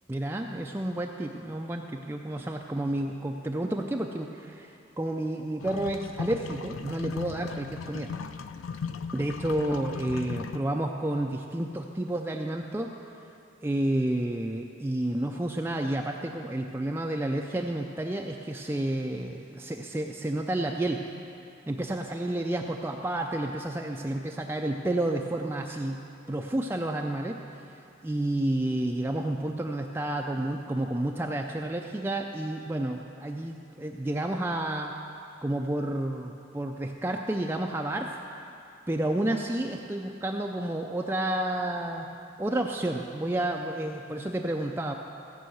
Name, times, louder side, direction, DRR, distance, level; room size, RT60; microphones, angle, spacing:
voice 1, 0.1-8.1 9.1-12.9 13.6-21.1 21.7-26.0 26.3-34.9 35.4-38.2 38.9-42.1 42.4-44.9, right 1 dB, 10° right, 2 dB, 0.4 m, -30 dB
sound 1, 5.6-10.6, left 5 dB, 80° left, 0.4 m, -37 dB
15.5 x 5.6 x 7.8 m, 2.7 s
head